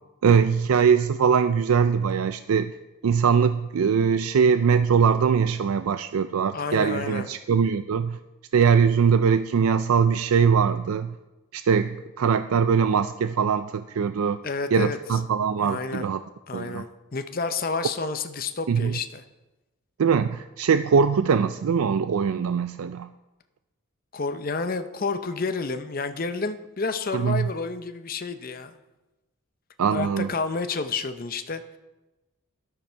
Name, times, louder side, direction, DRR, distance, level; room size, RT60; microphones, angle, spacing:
voice 1, 0.2-2.7 3.0-8.2 8.5-11.1 11.5-14.4 14.7-16.2 16.5-16.8 18.7-18.9 20.0-23.1 27.1-27.5 29.8-30.3, right 6 dB, 90° right, 11 dB, 0.4 m, -22 dB
voice 2, 6.5-7.3 14.4-15.0 15.6-16.1 16.5-19.2 24.1-28.7 29.9-31.8, left 4 dB, 40° left, 9 dB, 0.7 m, -30 dB
12.5 x 12.0 x 4.5 m, 1.1 s
head